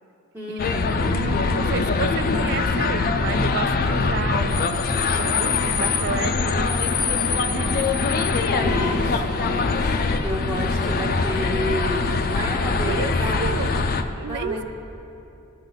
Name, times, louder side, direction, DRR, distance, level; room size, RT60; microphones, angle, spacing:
voice 1, 0.3-1.1 8.5-13.5 14.3-14.6, equal, 10° right, -4 dB, 0.7 m, -31 dB
sound 1, 0.6-14.0, left 4 dB, 40° left, 0.4 m, -23 dB
voice 2, 1.1-6.8 7.3-7.8 12.8-13.1 13.4-13.8 14.2-14.6, right 6 dB, 50° right, 14 dB, 0.3 m, -32 dB
16.0 x 7.2 x 4.0 m, 2.9 s
head